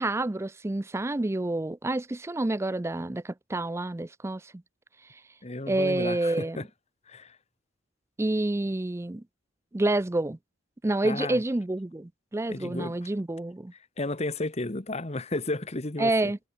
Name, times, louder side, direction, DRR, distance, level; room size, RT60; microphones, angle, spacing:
voice 1, 0.0-4.4 5.7-6.6 8.2-9.2 9.7-10.4 10.8-13.7 16.0-16.4, right 2 dB, 15° right, 0.4 m, -28 dB
voice 2, 5.4-6.6 7.1-7.4 11.0-11.4 12.5-13.0 14.0-16.3, left 2 dB, 35° left, 1.4 m, -33 dB
head